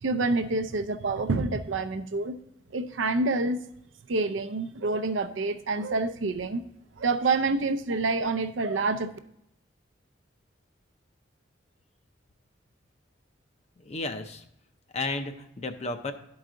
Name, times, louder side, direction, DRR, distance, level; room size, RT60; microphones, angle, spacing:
voice 1, 0.0-2.4 2.7-3.6 4.1-6.6 7.0-9.1, right 3 dB, 85° right, 9 dB, 0.5 m, -27 dB
voice 2, 13.8-14.4 14.9-16.1, left 2 dB, 35° left, 7 dB, 0.5 m, -33 dB
12.0 x 4.8 x 3.8 m, 0.78 s
head